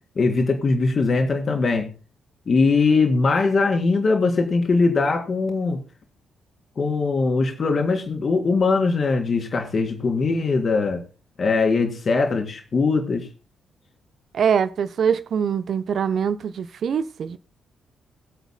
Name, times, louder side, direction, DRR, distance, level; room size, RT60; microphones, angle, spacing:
voice 1, 0.2-1.9 2.5-5.8 6.8-11.0 11.4-13.2, left 4 dB, 45° left, 3.2 m, -21 dB
voice 2, 14.3-17.4, right 7 dB, 55° right, 0.7 m, -23 dB
22.5 x 8.1 x 2.2 m
figure-of-eight pair, 40°, 0 cm